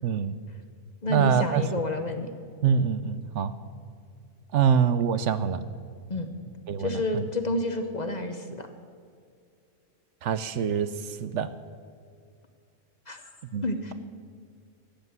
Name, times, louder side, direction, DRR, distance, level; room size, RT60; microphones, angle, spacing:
voice 1, 0.0-0.3 1.1-1.6 2.6-3.5 4.5-5.6 6.7-7.2 10.2-11.5 13.5-13.6, right 7 dB, 70° right, 13 dB, 0.9 m, -25 dB
voice 2, 1.0-2.3 6.1-6.3 6.8-8.7 13.1-13.2 13.6-13.9, left 2 dB, 35° left, 7 dB, 1.0 m, -29 dB
13.0 x 8.1 x 9.5 m, 2.2 s
omnidirectional pair, 1.3 m